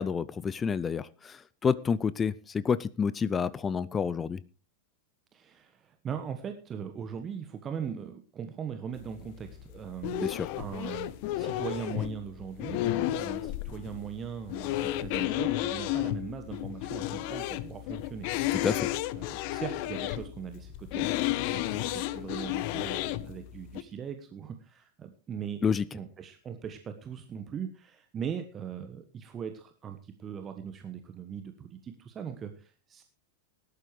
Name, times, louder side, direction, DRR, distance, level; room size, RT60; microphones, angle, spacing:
voice 1, 0.0-4.4 10.2-10.5 18.5-18.9 25.6-25.8, left 6 dB, 20° left, 18 dB, 0.6 m, -29 dB
voice 2, 5.3-10.3 10.6-18.3 19.2-21.1 21.4-25.6 25.9-33.0, right 7 dB, 25° right, 7 dB, 1.3 m, -40 dB
sound 1, 8.9-23.8, left 14 dB, 45° left, 0.9 m, -33 dB
19.0 x 12.0 x 3.2 m, 0.35 s
figure-of-eight pair, 90°, 0 cm